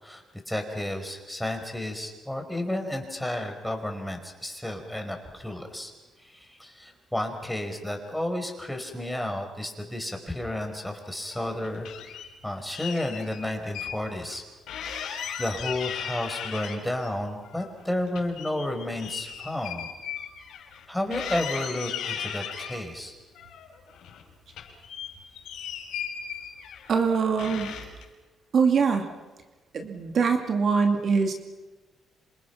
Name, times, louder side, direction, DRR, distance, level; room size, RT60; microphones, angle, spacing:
voice 1, 0.0-5.9 6.2-14.4 15.1-19.9 20.9-23.1, left 1 dB, 5° left, 4 dB, 5.2 m, -32 dB
sound 1, 11.2-12.3 12.7-14.0 14.3-14.4 14.7-17.1 17.4-20.8 21.1-22.8 23.4-24.2 24.5-27.0 27.4-28.0, left 8 dB, 85° left, 5.8 m, -37 dB
voice 2, 26.9-27.7 28.5-29.1 29.7-31.3, right 5 dB, 55° right, 4 dB, 2.6 m, -23 dB
27.5 x 26.5 x 6.0 m, 1.2 s
cardioid pair, 90°, 0 cm